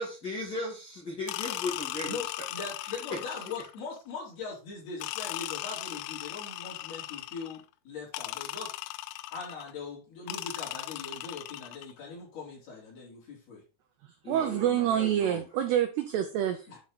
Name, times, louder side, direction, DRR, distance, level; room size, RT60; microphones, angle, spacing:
voice 1, 0.0-2.2 3.1-3.2 14.2-15.5, left 2 dB, 25° left, -4 dB, 2.2 m, -36 dB
sound 1, 1.3-3.8 5.0-7.6 8.1-9.7 10.3-11.9, left 16 dB, 85° left, 3.1 m, -38 dB
voice 2, 2.1-8.8 9.3-13.6 16.7-16.8, left 4 dB, 50° left, -3 dB, 5.7 m, -41 dB
voice 3, 14.3-16.7, right 10 dB, 90° right, 6 dB, 2.3 m, -27 dB
11.0 x 4.4 x 4.0 m, 0.32 s
omnidirectional pair, 5.7 m